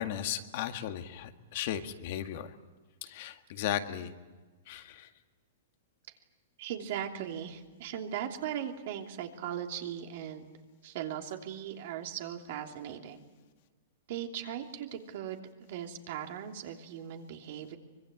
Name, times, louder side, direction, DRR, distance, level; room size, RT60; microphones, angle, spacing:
voice 1, 0.0-2.5 3.0-4.1 4.7-5.1, left 11 dB, 55° left, 7 dB, 1.9 m, -36 dB
voice 2, 6.6-10.4 10.8-13.2 14.1-17.8, right 9 dB, 55° right, 3 dB, 2.9 m, -38 dB
24.5 x 22.0 x 9.4 m, 1.3 s
hypercardioid pair, 145°, 0 cm